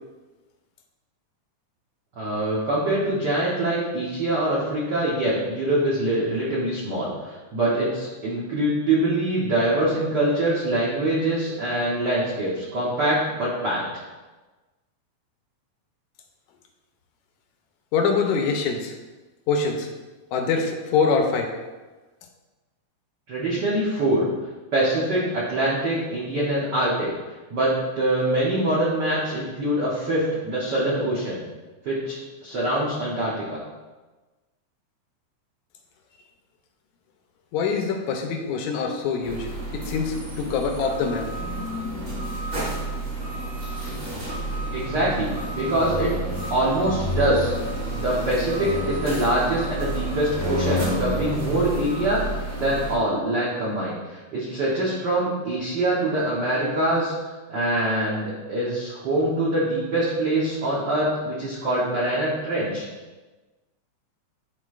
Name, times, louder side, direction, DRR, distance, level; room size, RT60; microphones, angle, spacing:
voice 1, 2.2-13.8 23.3-24.2 24.7-27.1 27.5-31.4 31.8-32.1 32.4-33.6 44.7-45.3 45.5-46.1 46.5-47.5 47.9-52.2 52.6-57.1 57.5-62.9, right 1 dB, 75° right, -6 dB, 1.0 m, -24 dB
voice 2, 17.9-19.0 19.5-19.9 20.3-21.6 37.5-41.3, left 5 dB, 80° left, 4 dB, 1.9 m, -24 dB
sound 1, 39.2-53.0, equal, 40° right, 1.7 m, -30 dB
10.5 x 4.4 x 2.4 m, 1.2 s
omnidirectional pair, 3.5 m